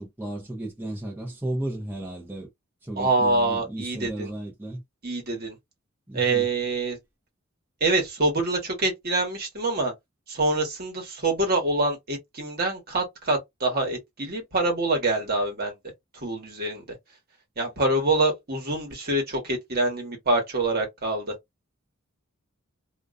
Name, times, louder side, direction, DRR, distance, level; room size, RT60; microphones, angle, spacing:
voice 1, 0.0-2.5 2.8-4.8 6.1-6.4, right 1 dB, 10° right, 0.6 m, -34 dB
voice 2, 3.0-4.3 5.0-5.5 6.1-7.0 7.8-9.9 10.3-15.7 16.2-16.8 17.6-21.3, right 2 dB, 45° right, 1.1 m, -25 dB
2.4 x 2.2 x 2.4 m
head